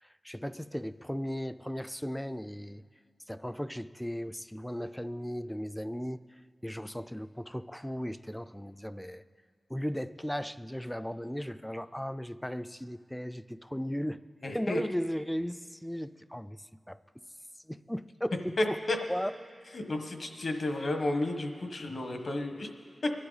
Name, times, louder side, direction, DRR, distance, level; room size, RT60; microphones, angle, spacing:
voice 1, 0.0-2.8 3.3-6.2 6.6-9.2 9.7-14.2 14.5-17.0 17.6-18.8 19.1-19.3, equal, 5° left, 14 dB, 0.4 m, -36 dB
voice 2, 14.4-14.8 18.6-19.0 19.7-22.7 23.0-23.1, left 2 dB, 65° left, 5 dB, 1.3 m, -32 dB
22.5 x 11.5 x 4.0 m, 2.1 s
wide cardioid pair, 75°, 0 cm